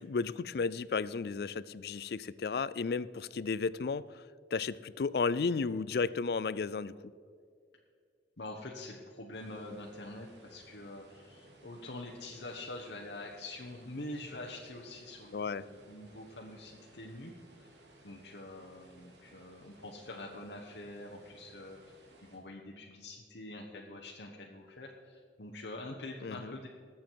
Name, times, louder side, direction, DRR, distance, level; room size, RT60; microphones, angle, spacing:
voice 1, 0.0-4.2 4.5-6.9 15.3-15.7 26.2-26.5, left 4 dB, 60° left, 18 dB, 0.4 m, -33 dB
voice 2, 8.4-17.7 18.0-22.0 22.3-26.7, left 2 dB, 75° left, 0 dB, 1.1 m, -45 dB
sound 1, 9.3-22.4, right 1 dB, 80° right, 2.5 m, -60 dB
20.0 x 7.4 x 4.6 m, 2.2 s
head